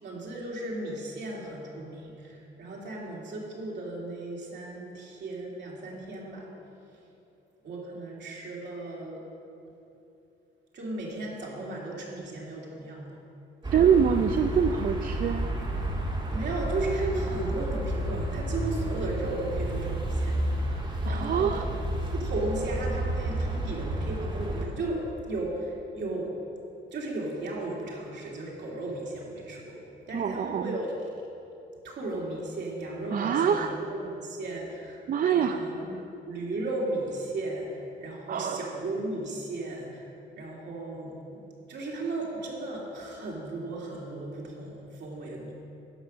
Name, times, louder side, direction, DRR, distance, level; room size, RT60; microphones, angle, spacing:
voice 1, 0.0-6.5 7.6-9.3 10.7-13.2 16.3-21.5 22.1-26.3 26.9-31.1 31.8-35.0 35.3-40.1 40.4-41.1 41.7-45.5, right 2 dB, 60° right, -3 dB, 2.7 m, -35 dB
sound 1, 13.6-24.7, right 1 dB, 25° right, 1.9 m, -31 dB
voice 2, 13.7-15.5 20.7-21.7 30.1-30.7 33.1-33.8 35.1-35.6 35.9-36.0 38.3-38.7, right 7 dB, 45° right, 7 dB, 0.5 m, -25 dB
11.0 x 6.7 x 6.2 m, 2.8 s
cardioid pair, 90°, 20 cm